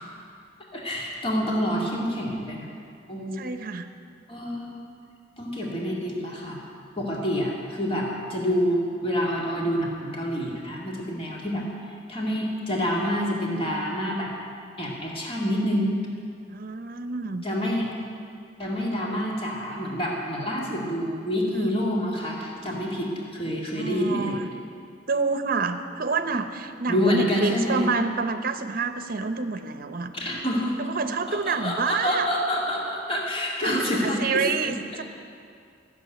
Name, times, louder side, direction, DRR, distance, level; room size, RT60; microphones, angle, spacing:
voice 1, 0.7-2.7 3.1-3.4 4.3-4.8 5.4-6.6 7.0-11.6 12.1-14.3 14.8-15.9 17.4-17.9 18.6-24.4 26.9-27.9 30.1-30.8 31.3-34.7, equal, 30° left, -3 dB, 2.2 m, -27 dB
voice 2, 3.3-3.9 16.5-17.4 21.5-21.7 23.7-24.5 25.1-30.1 30.8-32.3 33.6-35.0, right 4 dB, 50° right, 9 dB, 0.8 m, -28 dB
14.5 x 7.2 x 9.2 m, 2.4 s
head